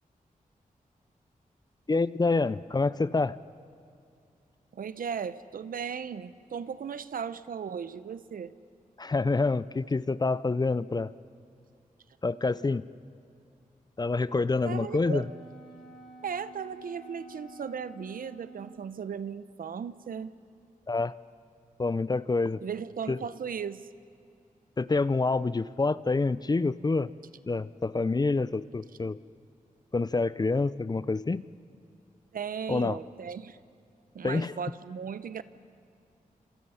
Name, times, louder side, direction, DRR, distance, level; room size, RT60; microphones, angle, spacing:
voice 1, 1.9-3.4 9.0-11.1 12.2-12.8 14.0-15.3 20.9-21.1 21.8-22.6 23.1-23.2 24.8-27.1 27.5-29.2 29.9-31.4 32.7-33.0 34.2-34.6, left 3 dB, 30° left, 17 dB, 0.5 m, -27 dB
voice 2, 4.7-8.5 14.6-15.2 16.2-20.3 22.6-23.9 32.3-33.6 34.1-35.4, right 7 dB, 80° right, 14 dB, 0.8 m, -36 dB
Wind instrument woodwind instrument, 14.6-19.0, right 2 dB, ahead, 7.4 m, -50 dB
27.0 x 26.5 x 5.7 m, 2.5 s
cardioid pair, 75°, 15 cm